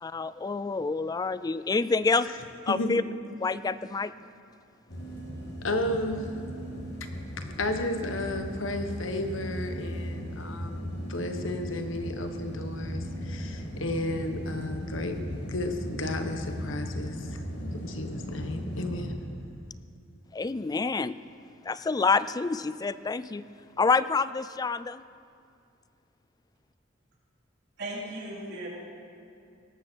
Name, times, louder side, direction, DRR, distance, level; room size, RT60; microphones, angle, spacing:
voice 1, 0.0-2.3 2.7-3.0 3.4-4.1 20.3-21.2 21.6-23.4 23.8-25.0, left 4 dB, 20° left, 15 dB, 0.3 m, -27 dB
sound 1, 4.9-19.1, equal, 60° left, 2.6 m, -37 dB
voice 2, 5.6-6.3 7.6-15.1 15.5-17.3 17.8-19.1, left 1 dB, 85° left, 6 dB, 1.3 m, -33 dB
voice 3, 27.8-28.7, right 1 dB, 60° right, -4 dB, 3.7 m, -36 dB
18.5 x 14.0 x 4.6 m, 2.4 s
head